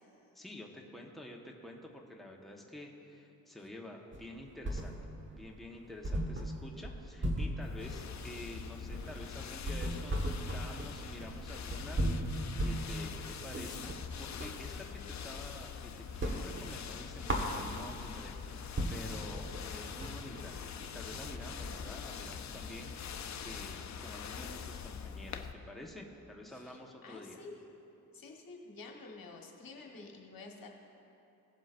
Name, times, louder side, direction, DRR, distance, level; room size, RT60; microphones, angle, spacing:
voice 1, 0.3-5.0 5.3-13.9 14.2-15.7 16.0-20.6 20.9-27.4, left 1 dB, ahead, -1 dB, 1.2 m, -49 dB
sound 1, 4.1-5.3 5.6-5.7 6.0-14.6 15.0-15.8 16.0-18.1 18.5-18.6 18.8-22.9, right 1 dB, 30° right, 1.4 m, -37 dB
sound 2, 7.6-25.5, left 7 dB, 50° left, 0.6 m, -44 dB
voice 2, 26.5-27.6 28.1-30.7, left 3 dB, 65° left, 1 dB, 1.4 m, -50 dB
17.5 x 7.4 x 2.6 m, 2.9 s
cardioid pair, 60°, 37 cm